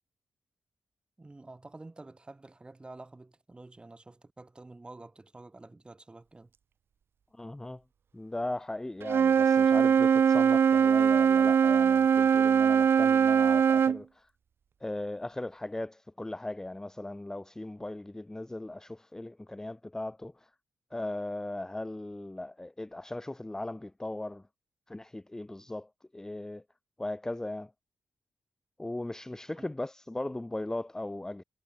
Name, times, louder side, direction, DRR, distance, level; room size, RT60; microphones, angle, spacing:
voice 1, 1.2-6.5 29.6-29.7, right 2 dB, 20° right, 3.8 m, -49 dB
voice 2, 7.3-7.8 8.1-14.3 14.8-20.5 20.9-24.5 24.9-26.6 27.0-27.7 28.8-31.4, left 1 dB, 10° left, 0.7 m, -38 dB
Wind instrument woodwind instrument, 9.0-14.0, right 7 dB, 55° right, 0.3 m, -22 dB
wide cardioid pair, 110°, 5 cm